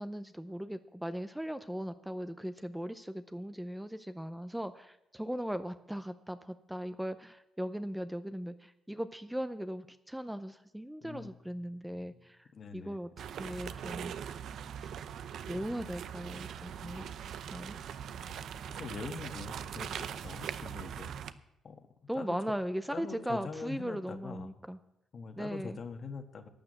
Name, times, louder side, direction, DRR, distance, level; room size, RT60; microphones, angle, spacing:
voice 1, 0.0-13.1 13.4-14.1 14.8-14.9 15.5-17.1 17.5-17.8 22.1-24.8 25.4-25.8, equal, 5° right, 10 dB, 0.6 m, -38 dB
voice 2, 11.0-11.4 11.8-13.0 16.8-17.2 18.3-21.1 21.6-21.9 22.1-22.4 22.9-24.5 25.1-26.5, left 5 dB, 50° left, 7 dB, 1.4 m, -44 dB
sound 1, 13.2-21.3, right 8 dB, 70° right, 0.7 m, -41 dB
12.0 x 9.0 x 7.7 m, 0.86 s
cardioid pair, 90°, 0 cm